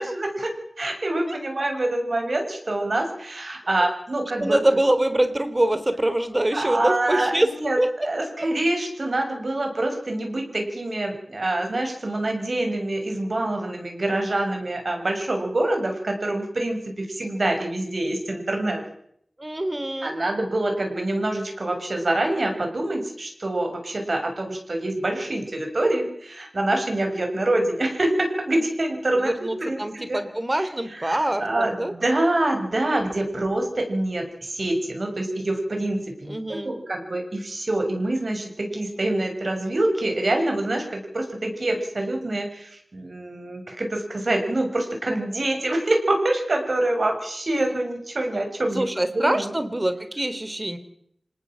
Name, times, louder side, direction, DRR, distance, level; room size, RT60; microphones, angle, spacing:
voice 1, 0.0-4.6 6.5-7.8 8.0-18.8 20.0-29.3 29.6-30.2 30.6-30.7 30.9-48.8 49.1-49.4, right 1 dB, 65° right, 4 dB, 6.5 m, -26 dB
voice 2, 4.4-7.5 7.8-7.9 8.2-8.5 19.4-20.1 29.2-31.9 36.3-36.7 48.7-50.8, right 1 dB, 30° right, 11 dB, 3.1 m, -24 dB
26.5 x 18.5 x 7.6 m, 0.71 s
wide cardioid pair, 45°, 0 cm